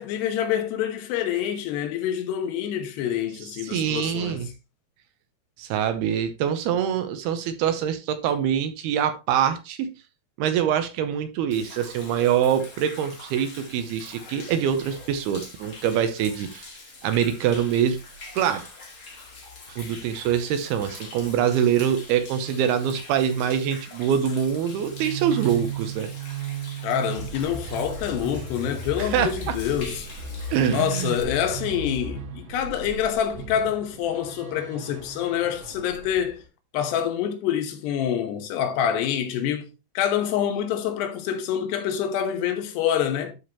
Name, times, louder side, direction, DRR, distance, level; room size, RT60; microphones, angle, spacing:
voice 1, 0.0-4.4 26.8-30.1 30.7-36.4 36.7-39.7 39.9-43.3, left 9 dB, 80° left, 3.2 m, -26 dB
voice 2, 3.6-4.5 5.6-9.9 10.4-16.7 17.0-18.0 18.3-18.7 19.7-26.1 29.0-29.6 30.5-31.2, right 9 dB, 80° right, 2.6 m, -24 dB
Human voice / Rain / Stream, 11.5-31.2, left 3 dB, 45° left, 1.1 m, -44 dB
sound 1, 24.6-36.4, right 5 dB, 60° right, 2.2 m, -35 dB
12.5 x 4.9 x 2.9 m
omnidirectional pair, 4.8 m